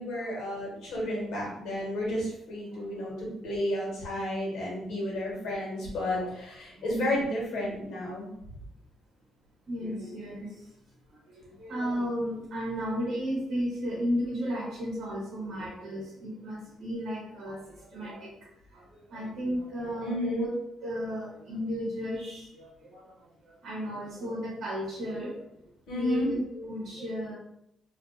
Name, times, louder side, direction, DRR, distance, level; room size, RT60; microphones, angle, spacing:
voice 1, 0.0-8.3 20.0-20.4 25.9-26.3, left 1 dB, 75° left, -3 dB, 1.1 m, -32 dB
voice 2, 9.7-10.6 11.3-18.3 18.7-20.5 20.8-23.1 23.4-25.4 25.9-27.3, equal, 55° right, -5 dB, 0.8 m, -34 dB
2.4 x 2.3 x 2.5 m, 0.79 s
cardioid pair, 145°, 0 cm